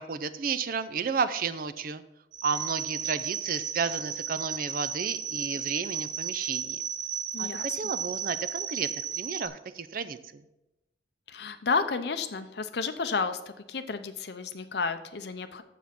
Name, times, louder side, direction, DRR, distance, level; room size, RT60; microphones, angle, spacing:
voice 1, 0.0-2.0 2.4-6.8 7.4-10.4, right 5 dB, 45° right, 13 dB, 0.4 m, -32 dB
sound 1, 2.3-9.5, right 8 dB, 85° right, 0.9 m, -34 dB
voice 2, 7.3-7.7 11.3-13.4 13.7-15.6, left 4 dB, 60° left, 9 dB, 0.6 m, -31 dB
7.4 x 6.9 x 5.9 m, 0.95 s
head